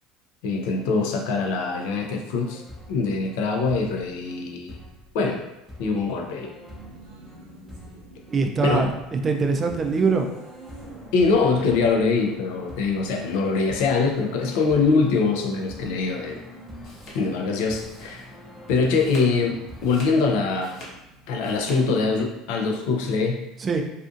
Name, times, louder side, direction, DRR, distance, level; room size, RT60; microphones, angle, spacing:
voice 1, 0.4-2.6 2.9-4.8 5.1-5.5 5.8-6.5 8.6-8.9 11.1-16.4 17.1-18.3 18.7-20.8 21.3-23.4, left 4 dB, 75° left, 2 dB, 0.4 m, -23 dB
sound 1, 0.7-20.1, equal, 10° left, 0.6 m, -46 dB
Race car auto racing, 6.4-22.6, right 1 dB, 80° right, 0.7 m, -46 dB
voice 2, 8.3-10.3 23.6-23.8, right 4 dB, 30° right, 4 dB, 0.3 m, -23 dB
sound 2, 16.5-18.4 18.8-19.4 19.7-21.8, left 1 dB, 55° left, 0.9 m, -44 dB
2.4 x 2.4 x 2.4 m, 0.93 s
supercardioid pair, 100°, 0 cm